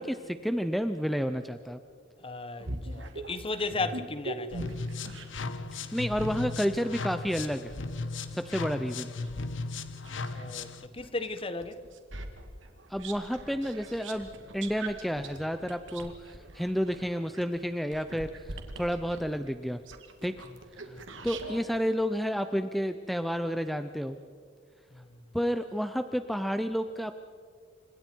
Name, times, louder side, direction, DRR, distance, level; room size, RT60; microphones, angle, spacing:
voice 1, 0.0-1.8 5.7-7.7 8.3-9.1 12.9-19.8 20.2-20.3 20.8-21.0 21.2-24.2 25.3-27.1, equal, ahead, 0.6 m, -31 dB
voice 2, 2.2-4.8 10.3-11.8 20.8-21.1 24.9-25.2, left 3 dB, 30° left, 1.2 m, -36 dB
sound 1, 2.6-5.6 6.1-10.5 11.0-21.6, right 2 dB, 80° right, 2.3 m, -43 dB
sound 2, 4.5-10.9, left 3 dB, 80° left, 1.2 m, -36 dB
29.5 x 26.0 x 4.6 m
head